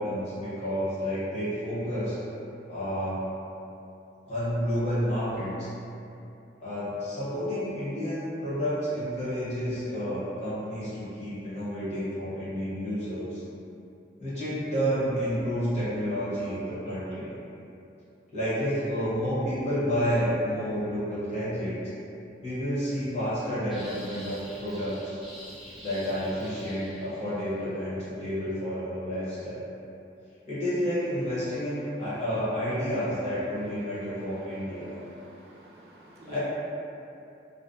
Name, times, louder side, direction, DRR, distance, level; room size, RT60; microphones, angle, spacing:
voice 1, 0.0-2.2 2.7-3.2 4.2-5.7 6.6-13.4 14.2-17.3 18.3-21.8 22.4-25.2 25.8-29.6 30.5-35.0 36.3-36.4, equal, 40° left, -12 dB, 0.9 m, -30 dB
sound 1, 23.7-27.4, equal, ahead, 0.4 m, -46 dB
voice 2, 34.8-36.4, right 2 dB, 60° right, -5 dB, 0.4 m, -50 dB
2.6 x 2.1 x 2.4 m, 2.7 s
head